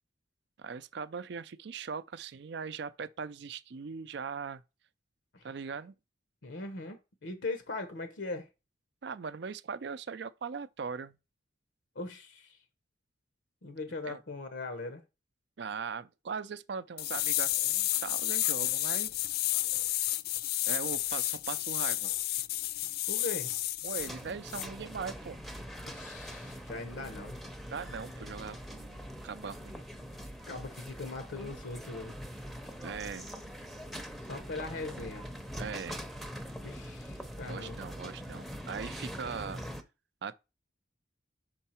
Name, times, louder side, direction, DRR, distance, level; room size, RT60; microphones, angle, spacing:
voice 1, 0.6-4.6 5.4-5.9 9.0-11.1 14.0-14.2 15.6-19.1 20.7-22.1 23.8-25.4 27.7-29.8 32.8-33.3 35.6-36.0 37.5-39.7 40.2-40.4, right 5 dB, 65° right, 0.4 m, -40 dB
voice 2, 6.4-8.5 11.9-12.6 13.6-15.0 23.1-23.5 25.8-27.4 30.5-32.2 34.3-35.3 36.6-37.8, left 3 dB, 80° left, 0.9 m, -40 dB
sound 1, 17.0-24.1 24.5-24.7, left 15 dB, 55° left, 0.3 m, -31 dB
sound 2, 24.0-39.8, equal, ahead, 0.6 m, -43 dB
5.6 x 4.5 x 4.3 m
head